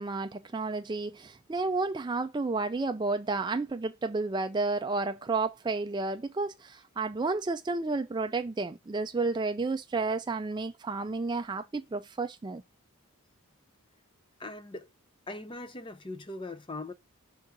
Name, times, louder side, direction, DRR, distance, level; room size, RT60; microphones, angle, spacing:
voice 1, 0.0-12.6, right 3 dB, 20° right, 0.3 m, -31 dB
voice 2, 14.4-14.9 15.3-16.9, left 2 dB, 25° left, 0.6 m, -40 dB
6.0 x 3.6 x 5.9 m
head